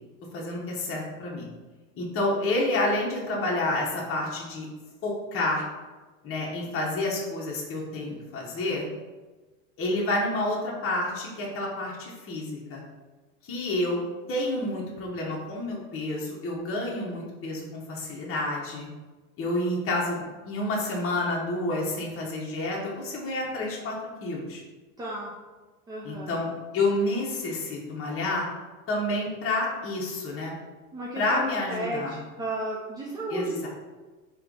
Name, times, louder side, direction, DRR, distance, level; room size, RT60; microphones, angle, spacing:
voice 1, 0.3-1.5 1.9-4.7 5.0-5.6 6.2-8.9 9.8-12.8 13.4-18.9 19.4-24.6 26.0-28.5 28.9-30.5 31.2-32.2 33.3-33.7, left 2 dB, 30° left, -3 dB, 1.1 m, -29 dB
voice 2, 25.0-25.3 25.9-26.3 30.9-33.7, right 1 dB, 10° right, -4 dB, 0.5 m, -33 dB
3.2 x 3.1 x 3.7 m, 1.3 s
hypercardioid pair, 100°, 43 cm